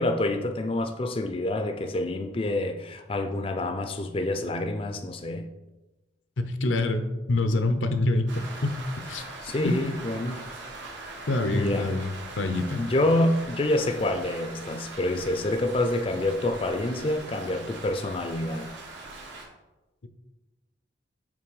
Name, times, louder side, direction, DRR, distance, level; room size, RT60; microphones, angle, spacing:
voice 1, 0.0-5.4 9.4-10.4 11.5-11.9 12.8-18.7, left 1 dB, 30° left, 6 dB, 0.4 m, -27 dB
voice 2, 6.4-8.8 9.0-9.2 9.6-9.7 11.3-12.8 20.0-20.1, left 2 dB, 85° left, 8 dB, 0.6 m, -26 dB
Rain, 8.3-19.4, right 3 dB, 80° right, 1.3 m, -41 dB
6.0 x 4.2 x 4.7 m, 1.1 s
head